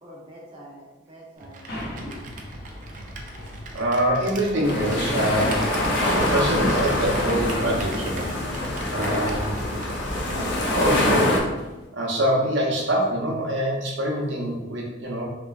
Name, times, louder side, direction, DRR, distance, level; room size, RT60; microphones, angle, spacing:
voice 1, 0.0-2.2, equal, 25° right, -5 dB, 0.7 m, -45 dB
Computer keyboard, 1.4-10.4, right 2 dB, 45° right, 0.3 m, -39 dB
sound 1, 1.7-11.9, left 1 dB, 50° left, 0.9 m, -40 dB
voice 2, 3.7-8.3 8.9-9.6 10.7-11.4 11.9-15.3, right 1 dB, 75° right, -2 dB, 0.7 m, -25 dB
sound 2, 4.6-11.4, left 1 dB, 70° left, 0.5 m, -24 dB
3.0 x 2.4 x 2.3 m, 1.1 s
head